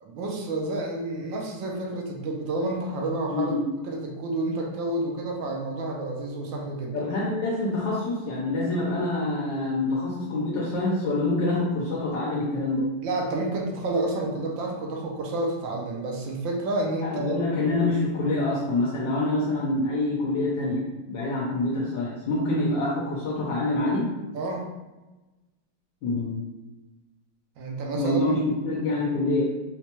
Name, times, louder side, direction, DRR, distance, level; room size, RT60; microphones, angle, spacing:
voice 1, 0.0-3.5 3.9-6.9 13.0-17.4 24.3-24.7 27.6-28.3, right 2 dB, 75° right, 0 dB, 1.3 m, -29 dB
voice 2, 3.3-3.7 6.9-12.9 17.0-24.1 26.0-26.4 27.9-29.4, left 2 dB, 70° left, -5 dB, 1.2 m, -26 dB
4.3 x 2.2 x 2.8 m, 1.1 s
omnidirectional pair, 2.2 m